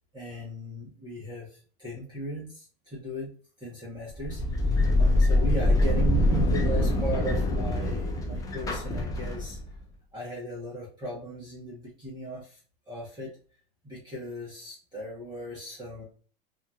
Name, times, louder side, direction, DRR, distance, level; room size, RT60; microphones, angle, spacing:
voice 1, 0.1-3.3 3.6-9.6 10.1-12.6 12.9-13.4 13.8-16.0, equal, 15° right, -6 dB, 1.1 m, -37 dB
sound 1, 4.1-9.7, left 1 dB, 10° left, 0.3 m, -24 dB
2.8 x 2.5 x 2.4 m, 0.40 s
supercardioid pair, 125°, 31 cm